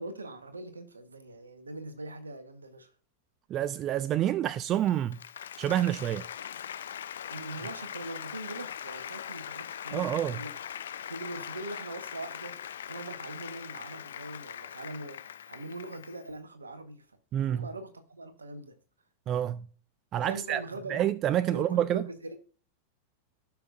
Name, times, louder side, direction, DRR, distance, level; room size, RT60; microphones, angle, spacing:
voice 1, 0.0-2.9 7.3-10.5 11.1-17.1 17.4-18.8 20.2-21.1 21.5-22.4, right 2 dB, 75° right, 1.2 m, -42 dB
voice 2, 3.5-5.2 5.6-6.3 9.9-10.4 17.3-17.7 19.3-19.7 20.1-20.6 20.9-22.1, right 11 dB, 30° right, 0.3 m, -28 dB
Applause, 4.7-16.3, left 9 dB, 65° left, 0.4 m, -41 dB
16.0 x 5.9 x 2.5 m
figure-of-eight pair, 90°, 0 cm